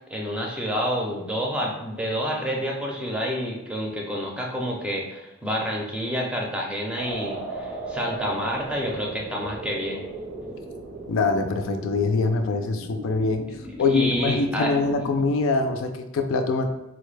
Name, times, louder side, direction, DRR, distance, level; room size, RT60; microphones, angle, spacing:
voice 1, 0.1-10.0 13.9-14.7, equal, 5° right, -1 dB, 0.5 m, -28 dB
sound 1, 6.9-15.3, right 2 dB, 60° right, 0.7 m, -36 dB
voice 2, 11.1-13.5 13.8-16.7, left 3 dB, 85° left, 6 dB, 0.4 m, -24 dB
3.9 x 2.1 x 3.2 m, 0.92 s
head